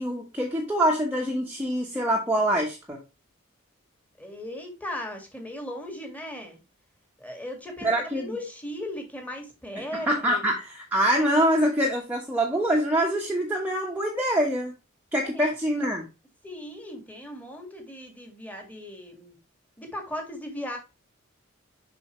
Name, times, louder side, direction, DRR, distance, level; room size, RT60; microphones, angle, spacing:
voice 1, 0.0-3.0 7.8-8.4 9.8-14.7 15.1-16.0, right 1 dB, 10° right, -2 dB, 1.1 m, -25 dB
voice 2, 4.2-6.6 7.2-10.4 15.2-15.5 16.4-19.4 19.8-20.8, left 1 dB, 5° left, 3 dB, 1.9 m, -37 dB
7.0 x 5.6 x 3.1 m, 0.28 s
head